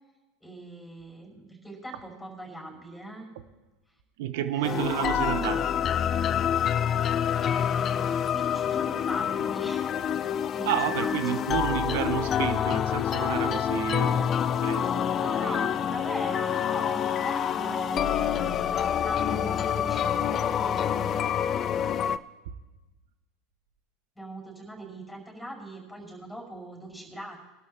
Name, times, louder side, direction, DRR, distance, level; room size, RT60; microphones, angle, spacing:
voice 1, 0.4-3.3 4.5-4.8 6.7-7.1 7.4-11.4 13.8-14.3 15.1-21.5 24.2-27.4, right 1 dB, 5° left, 1 dB, 5.7 m, -40 dB
voice 2, 4.2-5.7 10.7-14.3 14.6-15.1 15.4-15.6, right 11 dB, 65° right, 11 dB, 0.9 m, -30 dB
sound 1, 4.6-22.2, left 9 dB, 40° left, 0.4 m, -27 dB
22.5 x 12.0 x 2.9 m, 1.1 s
hypercardioid pair, 80°, 0 cm